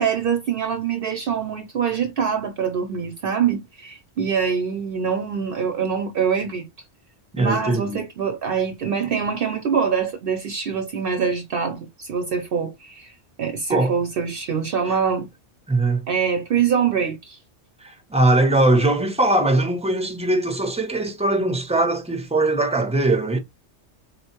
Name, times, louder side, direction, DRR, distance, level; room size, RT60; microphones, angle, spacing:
voice 1, 0.0-6.7 7.4-13.1 13.4-15.3 16.1-17.4, right 7 dB, 60° right, 0.7 m, -24 dB
voice 2, 7.3-8.0 13.7-13.9 15.7-16.0 17.8-23.4, right 2 dB, 10° right, 0.4 m, -20 dB
4.0 x 2.1 x 2.8 m
omnidirectional pair, 1.2 m